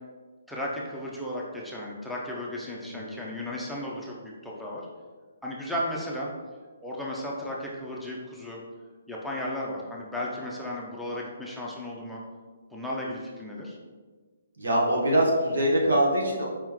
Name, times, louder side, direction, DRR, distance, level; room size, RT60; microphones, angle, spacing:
voice 1, 0.5-4.8 5.4-6.3 6.8-8.6 9.1-12.2 12.7-13.8, left 1 dB, ahead, -5 dB, 0.6 m, -34 dB
voice 2, 2.8-3.2 14.6-16.5, right 1 dB, 80° right, -2 dB, 1.2 m, -23 dB
4.7 x 3.6 x 3.0 m, 1.4 s
hypercardioid pair, 150°, 0 cm